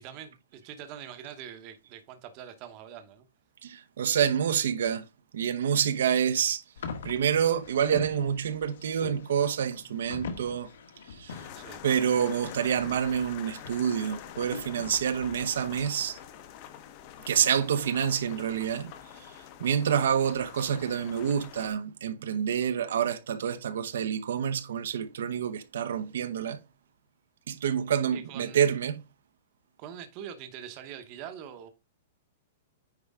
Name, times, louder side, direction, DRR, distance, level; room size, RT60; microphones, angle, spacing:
voice 1, 0.0-3.3 11.5-11.8 28.1-28.7 29.8-31.7, right 9 dB, 30° right, 0.9 m, -44 dB
voice 2, 3.6-5.0 5.3-6.6 7.0-10.7 11.2-11.4 11.8-16.2 17.3-18.9 19.6-26.6 27.5-29.0, right 8 dB, 75° right, 0.9 m, -27 dB
sound 1, 6.8-15.8, left 5 dB, 80° left, 1.5 m, -44 dB
sound 2, 11.3-21.7, left 10 dB, 30° left, 0.8 m, -46 dB
9.4 x 4.6 x 3.6 m
supercardioid pair, 180°, 0 cm